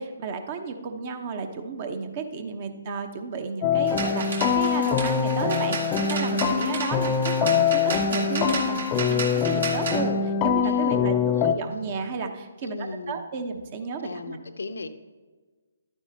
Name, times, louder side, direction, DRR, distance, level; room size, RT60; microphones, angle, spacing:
voice 1, 0.0-14.4, right 5 dB, 35° right, 6 dB, 0.9 m, -33 dB
sound 1, 3.6-11.5, left 7 dB, 25° left, 0.5 m, -24 dB
sound 2, 3.9-10.0, right 4 dB, 65° right, 1.9 m, -33 dB
voice 2, 10.6-11.6 12.6-13.2 14.0-14.9, left 3 dB, 70° left, 9 dB, 0.6 m, -37 dB
11.5 x 9.5 x 2.8 m, 1.4 s
figure-of-eight pair, 140°, 0 cm